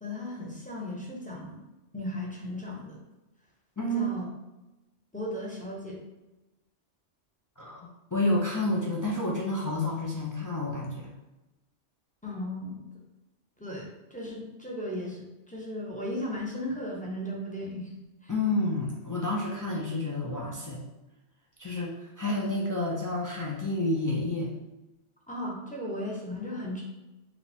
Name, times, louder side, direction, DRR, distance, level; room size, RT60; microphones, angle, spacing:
voice 1, 0.0-1.6 1.9-3.0 3.9-4.3 5.1-6.0 12.2-12.8 13.6-17.9 18.2-18.3 25.3-26.8, left 1 dB, 10° left, -4 dB, 0.7 m, -36 dB
voice 2, 3.8-4.1 7.6-11.1 18.3-20.8 21.6-24.5, left 2 dB, 30° left, -3 dB, 0.3 m, -29 dB
4.9 x 2.4 x 3.4 m, 1.0 s
omnidirectional pair, 1.2 m